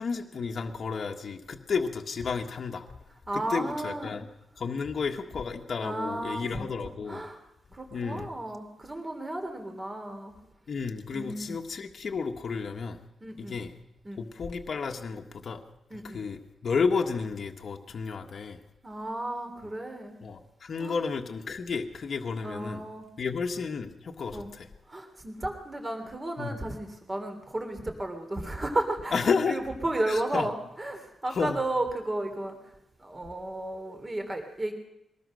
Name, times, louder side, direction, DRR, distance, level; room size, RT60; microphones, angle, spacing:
voice 1, 0.0-2.8 3.3-4.3 4.6-7.2 7.9-8.3 10.7-13.0 13.4-13.7 14.2-15.6 16.0-18.6 20.2-22.8 23.2-24.7 26.4-26.6 29.1-29.6 30.1-30.5 31.3-31.6, left 5 dB, 45° left, 3 dB, 1.6 m, -32 dB
voice 2, 3.3-4.1 5.8-6.7 7.1-7.4 7.7-10.3 11.1-11.6 13.2-13.6 14.0-14.2 15.9-16.2 18.8-20.2 20.8-21.0 22.4-23.0 24.3-24.5 24.9-29.1 29.5-32.5 33.0-34.7, right 1 dB, 20° right, 5 dB, 3.3 m, -33 dB
23.0 x 19.0 x 6.5 m, 0.85 s
wide cardioid pair, 165°, 0 cm